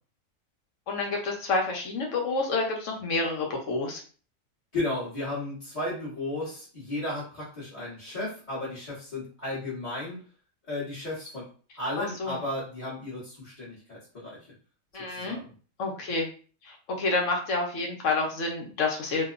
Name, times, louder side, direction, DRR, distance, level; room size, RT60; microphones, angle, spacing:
voice 1, 0.9-4.0 12.0-12.4 14.9-15.4 15.8-16.3 16.6-19.2, left 3 dB, 70° left, 1 dB, 1.0 m, -29 dB
voice 2, 4.7-10.2 10.7-11.5 11.8-14.4 14.9-15.5, left 2 dB, 30° left, -12 dB, 1.2 m, -34 dB
2.9 x 2.1 x 2.4 m, 0.39 s
omnidirectional pair, 1.4 m